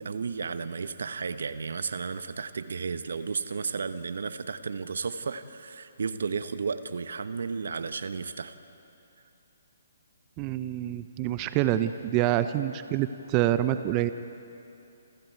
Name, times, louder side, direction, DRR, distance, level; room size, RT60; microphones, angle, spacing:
voice 1, 0.0-8.6, right 5 dB, 70° right, 12 dB, 1.1 m, -33 dB
voice 2, 10.4-14.1, right 13 dB, 30° right, 11 dB, 0.8 m, -26 dB
29.0 x 27.5 x 4.7 m, 2.8 s
figure-of-eight pair, 135°, 0 cm